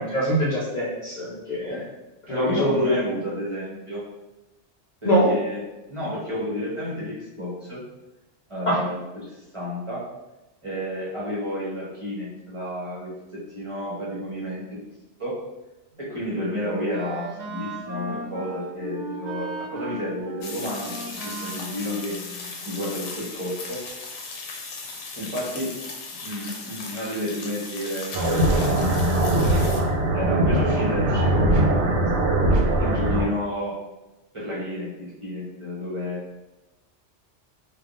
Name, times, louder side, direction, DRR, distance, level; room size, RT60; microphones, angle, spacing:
voice 1, 0.0-1.7 2.3-3.0 5.0-5.3 8.7-8.8, equal, 55° left, -5 dB, 0.5 m, -23 dB
voice 2, 2.3-4.0 5.0-5.6 5.9-7.8 8.5-10.0 10.6-14.6 15.2-15.4 16.0-23.8 25.2-25.7 26.2-29.6 30.1-32.0 32.8-33.8 34.3-36.4, equal, 30° right, -8 dB, 0.9 m, -31 dB
Wind instrument woodwind instrument, 15.9-23.1, right 2 dB, 55° right, 0.4 m, -38 dB
sound 1, 20.4-29.8, left 3 dB, 80° left, 0.9 m, -37 dB
sound 2, 28.1-33.2, right 1 dB, 75° right, 0.8 m, -21 dB
3.4 x 2.3 x 2.4 m, 1.0 s
omnidirectional pair, 1.2 m